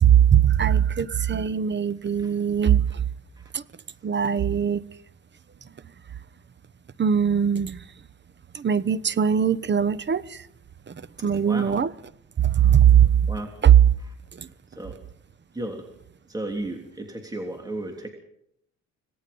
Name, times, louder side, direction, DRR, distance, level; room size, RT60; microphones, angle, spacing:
voice 1, 0.0-3.0 3.5-3.6 4.0-4.8 7.0-7.8 8.5-10.4 10.9-11.9 12.4-13.1 13.6-13.9 14.4-14.5, right 9 dB, 35° right, 17 dB, 1.0 m, -20 dB
voice 2, 16.3-18.1, right 1 dB, 15° right, 2 dB, 3.2 m, -33 dB
26.5 x 18.0 x 5.4 m, 0.74 s
cardioid pair, 90°, 30 cm